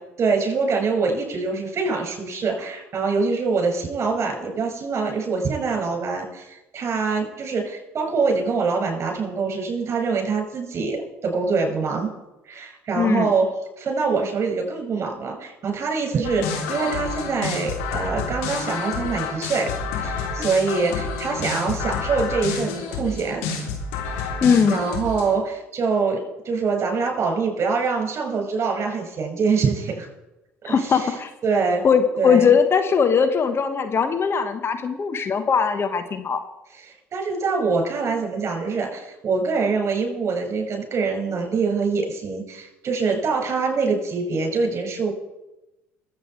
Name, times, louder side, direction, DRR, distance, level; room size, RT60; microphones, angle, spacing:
voice 1, 0.2-12.1 12.5-13.5 13.8-19.7 20.0-23.5 24.7-30.1 30.7-31.1 31.4-31.8 32.2-32.5 36.8-45.1, right 4 dB, 40° right, 3 dB, 6.2 m, -24 dB
voice 2, 12.9-13.3 24.4-24.8 30.6-31.3 31.8-36.4, left 6 dB, 40° left, 8 dB, 1.2 m, -20 dB
sound 1, 16.2-25.3, left 5 dB, 75° left, 3.0 m, -29 dB
21.5 x 8.5 x 4.7 m, 0.97 s
hypercardioid pair, 55°, 7 cm